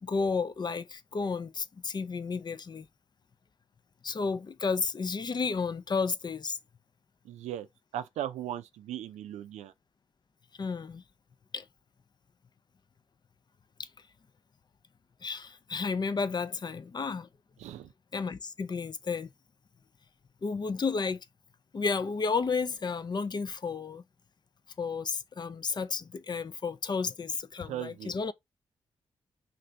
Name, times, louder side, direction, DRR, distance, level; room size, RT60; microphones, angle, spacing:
voice 1, 0.0-2.9 4.0-6.6 10.6-11.0 11.5-11.6 13.8-13.9 15.2-17.3 18.1-19.3 20.4-21.2 21.7-24.0 24.8-28.3, left 4 dB, 40° left, 0.4 m, -32 dB
voice 2, 7.2-7.7 7.9-9.7 17.6-17.9 27.7-28.1, right 11 dB, 85° right, 0.4 m, -37 dB
2.8 x 2.6 x 3.2 m
supercardioid pair, 50°, 11 cm